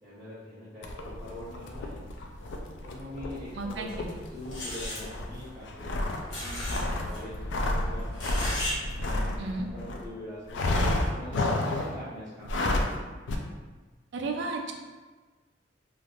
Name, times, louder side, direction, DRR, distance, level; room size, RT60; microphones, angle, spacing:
voice 1, 0.0-2.0 2.8-4.0 4.3-6.0 6.4-8.6 8.9-10.6 11.0-13.2, left 1 dB, 5° right, -13 dB, 0.7 m, -43 dB
sound 1, 0.8-10.1 10.5-12.0 12.4-13.0 13.3-13.4, left 1 dB, 70° left, 0.3 m, -31 dB
voice 2, 3.5-4.2 9.4-9.7 14.1-14.7, right 3 dB, 65° right, 2 dB, 0.4 m, -33 dB
sound 2, 3.9-4.0 4.5-5.0 6.3-6.8 7.1-7.2 8.1-8.8 9.0-9.1, left 1 dB, 90° left, 1.0 m, -35 dB
3.3 x 2.5 x 2.4 m, 1.3 s
head